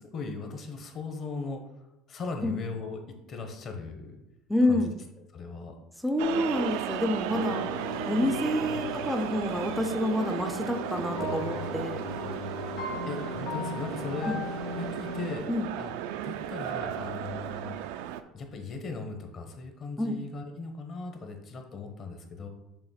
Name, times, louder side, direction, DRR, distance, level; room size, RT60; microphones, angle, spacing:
voice 1, 0.1-1.6 2.1-3.0 3.3-4.2 4.7-4.8 5.3-5.7 13.1-14.3 14.7-15.5 15.8-15.9 16.2-17.8 18.3-22.5, left 4 dB, 35° left, 4 dB, 1.1 m, -38 dB
voice 2, 4.5-4.9 6.0-7.7 8.1-12.0 14.3-14.4 15.5-15.7 20.0-20.2, left 1 dB, ahead, 5 dB, 0.5 m, -28 dB
sound 1, 6.2-18.2, right 10 dB, 85° right, 0.4 m, -35 dB
sound 2, 7.3-15.4, left 3 dB, 65° left, 1.6 m, -37 dB
7.0 x 3.0 x 5.7 m, 0.94 s
cardioid pair, 145°, 0 cm